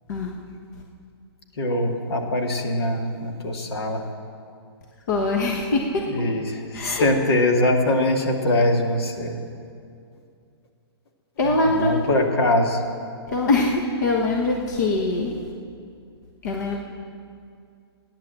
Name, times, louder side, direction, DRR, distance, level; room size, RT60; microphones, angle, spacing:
voice 1, 0.1-0.4 5.1-6.1 6.7-7.1 11.4-12.0 13.3-15.4 16.4-16.8, left 2 dB, 40° left, 0 dB, 1.3 m, -23 dB
voice 2, 1.6-4.0 6.1-9.4 11.7-12.8, left 1 dB, 70° left, 2 dB, 2.2 m, -22 dB
14.5 x 10.5 x 7.7 m, 2.4 s
hypercardioid pair, 170°, 14 cm